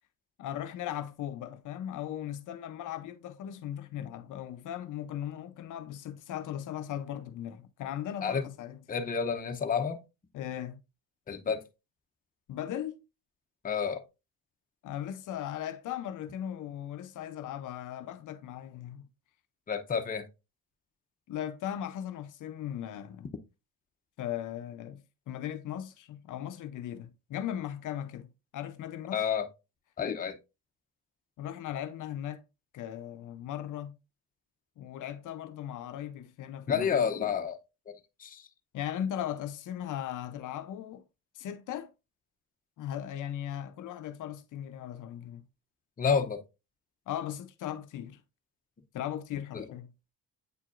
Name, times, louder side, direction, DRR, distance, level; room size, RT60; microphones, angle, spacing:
voice 1, 0.4-8.8 10.3-10.8 12.5-13.0 14.8-19.1 21.3-23.3 24.2-29.3 31.4-32.4 32.7-34.0 34.8-37.0 38.7-41.0 41.3-41.9 42.8-45.4 47.1-48.2 48.9-49.9, left 10 dB, 65° left, 0.6 m, -38 dB
voice 2, 8.9-10.0 11.3-11.6 13.6-14.0 19.7-20.2 29.1-29.5 30.0-30.4 36.7-37.6 38.2-38.5 46.0-46.4 49.5-49.6, left 6 dB, 25° left, 0.7 m, -29 dB
8.3 x 4.6 x 2.5 m
cardioid pair, 135°, 34 cm